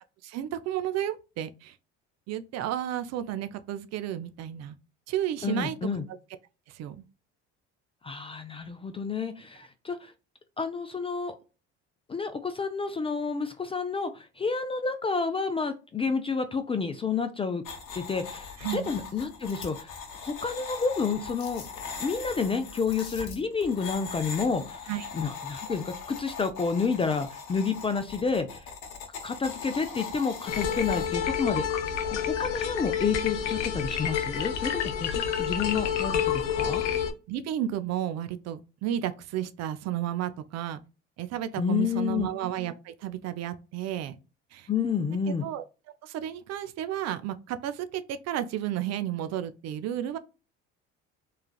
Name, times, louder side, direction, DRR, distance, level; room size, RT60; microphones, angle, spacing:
voice 1, 0.2-1.8 2.3-4.8 5.1-5.8 6.7-7.0 18.6-18.9 24.9-25.1 37.3-40.8 41.2-44.1 44.5-44.7 45.4-45.6 46.0-50.2, right 11 dB, 50° right, 0.4 m, -32 dB
voice 2, 5.4-6.0 8.0-10.1 10.6-11.3 12.1-17.6 17.9-19.9 20.2-24.8 25.1-28.7 29.2-31.6 32.0-36.8 41.6-42.3 44.7-45.5, left 5 dB, 15° left, 0.3 m, -30 dB
sound 1, 17.7-31.1, left 5 dB, 60° left, 0.9 m, -40 dB
sound 2, 30.5-37.1, left 8 dB, 85° left, 0.6 m, -29 dB
3.1 x 2.3 x 2.2 m
hypercardioid pair, 70°, 35 cm